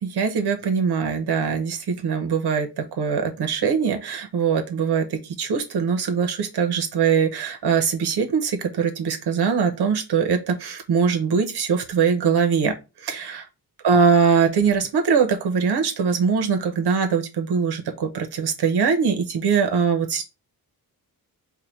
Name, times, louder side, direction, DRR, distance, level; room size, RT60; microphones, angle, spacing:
voice 1, 0.0-12.7 13.0-13.4 13.8-20.2, right 6 dB, 85° right, 5 dB, 1.0 m, -22 dB
4.8 x 2.3 x 4.5 m, 0.27 s
wide cardioid pair, 125°, 39 cm